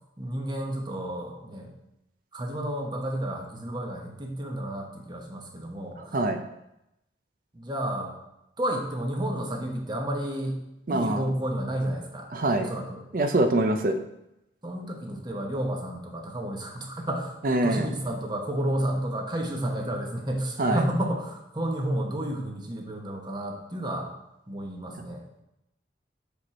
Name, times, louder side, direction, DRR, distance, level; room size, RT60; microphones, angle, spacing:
voice 1, 0.2-1.7 2.3-6.2 7.5-8.1 8.6-10.6 10.9-12.3 12.6-13.1 14.6-24.1 24.5-25.2, right 1 dB, 25° right, 1 dB, 1.0 m, -31 dB
voice 2, 6.0-6.4 10.9-11.2 12.3-12.7 13.1-14.0 17.4-17.9 20.6-20.8, right 2 dB, 50° right, 6 dB, 0.5 m, -24 dB
6.2 x 5.2 x 4.2 m, 0.85 s
head